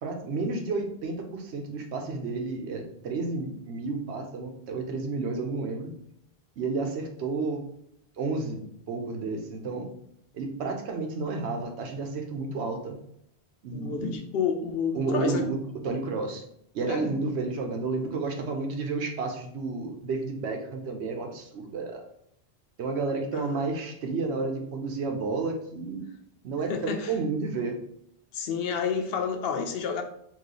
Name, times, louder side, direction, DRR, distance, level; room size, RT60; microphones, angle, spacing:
voice 1, 0.0-5.9 6.6-7.6 8.2-9.9 10.3-13.0 13.6-14.2 14.9-15.6 15.8-16.4 16.7-22.0 22.8-26.0 26.4-27.8, right 3 dB, 90° right, 3 dB, 1.0 m, -31 dB
voice 2, 13.7-15.5 16.9-17.1 23.3-23.7 26.7-27.1 28.3-30.0, left 6 dB, 70° left, 5 dB, 0.8 m, -30 dB
3.0 x 2.3 x 3.8 m, 0.72 s
omnidirectional pair, 1.1 m